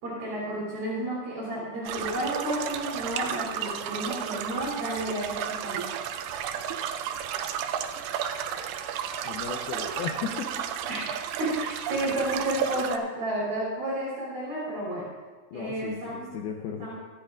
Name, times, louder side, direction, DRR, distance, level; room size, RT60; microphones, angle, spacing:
voice 1, 0.0-5.8 10.9-15.1 15.5-16.3 16.8-17.0, right 1 dB, 55° right, -7 dB, 4.8 m, -31 dB
sound 1, 1.9-13.0, right 9 dB, 85° right, 2.7 m, -33 dB
voice 2, 9.2-10.5 10.8-11.0 15.5-16.9, left 7 dB, 80° left, 2 dB, 2.3 m, -35 dB
24.0 x 9.9 x 2.5 m, 1.3 s
omnidirectional pair, 5.1 m